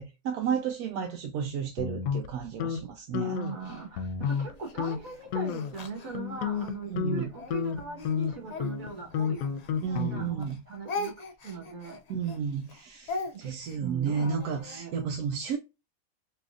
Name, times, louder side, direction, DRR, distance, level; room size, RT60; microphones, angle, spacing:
voice 1, 0.0-3.4 6.9-7.3 9.8-10.6 12.1-15.6, right 7 dB, 80° right, 1.1 m, -32 dB
sound 1, 1.8-2.8 3.1-3.6 4.0-4.5 4.8-5.0 5.3-5.8 6.1-10.5, left 7 dB, 70° left, 1.0 m, -31 dB
voice 2, 3.2-12.0 13.3-15.0, right 4 dB, 65° right, 1.5 m, -40 dB
Speech, 3.6-6.8 7.3-10.1 10.4-14.8, left 3 dB, 85° left, 0.3 m, -40 dB
3.7 x 3.0 x 2.3 m
omnidirectional pair, 1.6 m